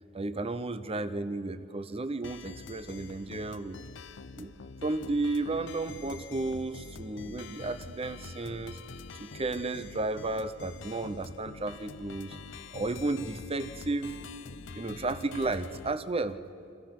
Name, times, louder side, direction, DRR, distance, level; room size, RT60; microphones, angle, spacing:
voice 1, 0.1-3.8 4.4-4.5 4.8-8.8 9.2-12.4 12.7-14.1 14.7-16.4, right 2 dB, 30° right, 13 dB, 0.8 m, -33 dB
sound 1, 2.2-16.0, left 4 dB, 65° left, 0.7 m, -46 dB
28.5 x 26.0 x 6.0 m, 2.7 s
head